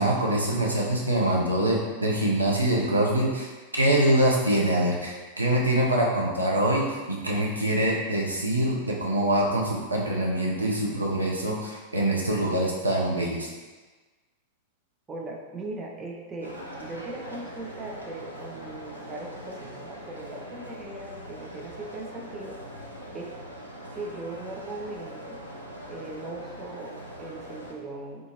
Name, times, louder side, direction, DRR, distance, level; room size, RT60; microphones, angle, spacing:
voice 1, 0.0-13.5, right 1 dB, 80° right, -2 dB, 0.5 m, -24 dB
voice 2, 15.1-22.6 23.1-23.3 23.9-25.4 25.9-28.3, right 2 dB, 20° right, -1 dB, 0.4 m, -39 dB
sound 1, 16.4-27.7, equal, 90° left, 0.4 m, -42 dB
3.6 x 2.5 x 2.8 m, 1.3 s
figure-of-eight pair, 90°, 0 cm